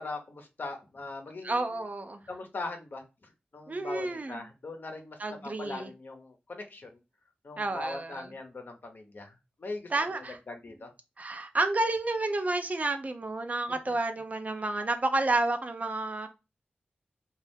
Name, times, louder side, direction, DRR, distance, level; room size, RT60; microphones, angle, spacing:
voice 1, 0.0-1.8 2.3-7.0 7.4-10.9 13.7-13.9, left 2 dB, 60° left, 0.7 m, -41 dB
voice 2, 1.4-2.2 3.7-4.4 5.2-5.9 7.6-8.2 9.9-10.4 11.2-16.3, right 2 dB, 45° right, 0.5 m, -30 dB
2.6 x 2.4 x 3.4 m
cardioid pair, 50°, 4 cm